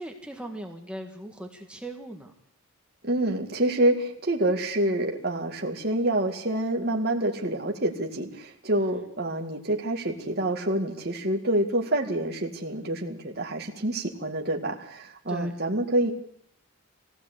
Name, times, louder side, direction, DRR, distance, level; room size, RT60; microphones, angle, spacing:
voice 1, 0.0-2.3 8.8-9.1 15.3-15.5, right 1 dB, 5° right, 3 dB, 1.8 m, -39 dB
voice 2, 3.0-16.1, right 1 dB, 45° right, 2 dB, 2.2 m, -27 dB
23.0 x 16.5 x 8.4 m, 0.68 s
head